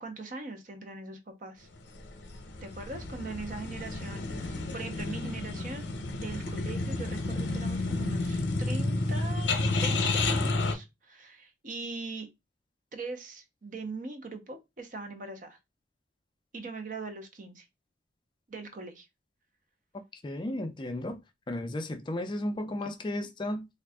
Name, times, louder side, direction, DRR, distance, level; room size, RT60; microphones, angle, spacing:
voice 1, 0.0-1.7 2.6-12.3 12.9-15.6 16.5-17.7 18.5-19.1, right 3 dB, 45° right, 0.6 m, -41 dB
sound 1, 1.9-10.7, left 2 dB, 65° left, 0.7 m, -31 dB
voice 2, 20.2-21.2 21.5-23.7, left 1 dB, 25° left, 0.4 m, -34 dB
3.5 x 2.4 x 3.4 m
head